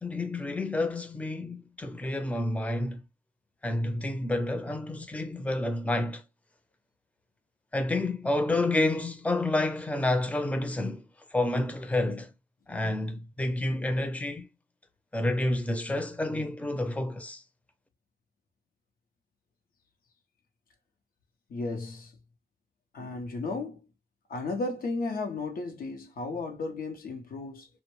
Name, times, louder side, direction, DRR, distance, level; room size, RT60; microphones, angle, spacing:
voice 1, 0.0-3.0 3.6-6.2 7.7-11.0 11.3-12.3 12.7-14.5 15.1-17.4, left 2 dB, 10° left, 0.5 m, -29 dB
voice 2, 21.5-22.1 22.9-23.8 24.3-27.7, left 3 dB, 80° left, 0.6 m, -34 dB
2.2 x 2.1 x 3.0 m
cardioid pair, 55°, 15 cm